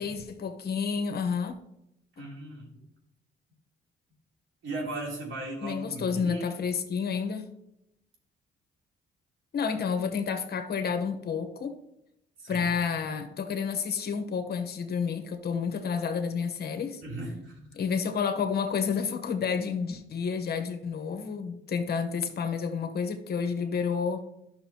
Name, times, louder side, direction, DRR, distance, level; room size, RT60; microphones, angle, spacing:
voice 1, 0.0-1.5 2.2-2.3 5.6-7.5 9.5-11.8 12.5-17.0 17.7-24.3, left 6 dB, 55° left, 1.1 m, -30 dB
voice 2, 2.2-2.7 4.6-6.5 12.4-12.7 17.0-17.7, right 2 dB, 75° right, 3.2 m, -37 dB
11.5 x 6.2 x 2.9 m
cardioid pair, 90°, 20 cm